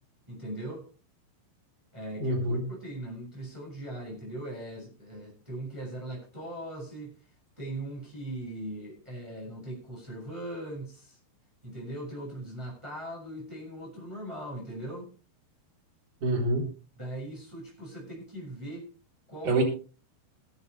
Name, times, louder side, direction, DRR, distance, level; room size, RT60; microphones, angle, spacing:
voice 1, 0.3-0.9 1.9-7.1 7.6-11.2 11.6-15.1 17.0-18.9 19.3-19.6, right 1 dB, 5° right, -2 dB, 6.6 m, -39 dB
voice 2, 2.2-2.7 16.2-16.7 19.4-19.6, right 2 dB, 50° right, -2 dB, 5.6 m, -26 dB
22.0 x 10.0 x 3.4 m, 0.36 s
omnidirectional pair, 4.6 m